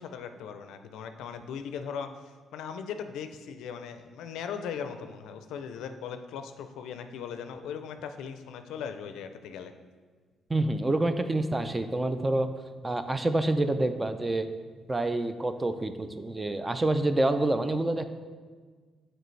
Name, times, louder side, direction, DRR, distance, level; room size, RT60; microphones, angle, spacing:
voice 1, 0.0-9.7, left 7 dB, 85° left, 8 dB, 0.4 m, -39 dB
voice 2, 10.5-12.5 12.8-14.5 14.9-18.0, right 2 dB, 20° right, 10 dB, 0.4 m, -27 dB
6.6 x 4.4 x 3.2 m, 1.5 s
cardioid pair, 90°, 0 cm